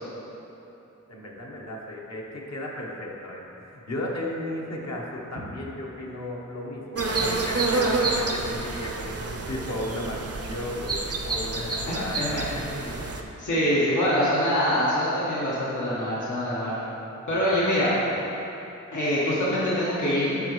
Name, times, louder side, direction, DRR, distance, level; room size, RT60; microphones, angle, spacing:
voice 1, 1.1-13.2 17.4-18.1, left 1 dB, 60° left, -3 dB, 1.2 m, -35 dB
sound 1, 7.0-13.2, right 3 dB, 50° right, 0.6 m, -28 dB
voice 2, 11.9-12.4 13.4-16.8 17.3-17.9 18.9-20.3, equal, 80° left, -9 dB, 1.6 m, -24 dB
9.0 x 5.5 x 3.2 m, 2.9 s
wide cardioid pair, 60°, 30 cm